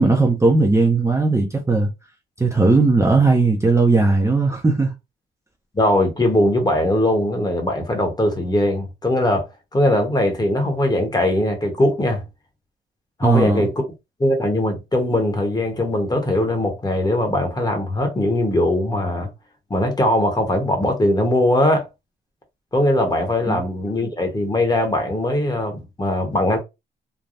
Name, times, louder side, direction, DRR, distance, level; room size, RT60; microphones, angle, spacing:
voice 1, 0.0-1.9 2.4-4.9 13.2-13.7 23.5-23.6, right 3 dB, 15° right, 0.6 m, -17 dB
voice 2, 5.7-9.4 9.7-12.2 13.2-13.7 14.2-19.3 19.7-21.9 22.7-26.6, left 1 dB, 20° left, 1.1 m, -20 dB
3.3 x 2.2 x 2.6 m
cardioid pair, 90°, 20 cm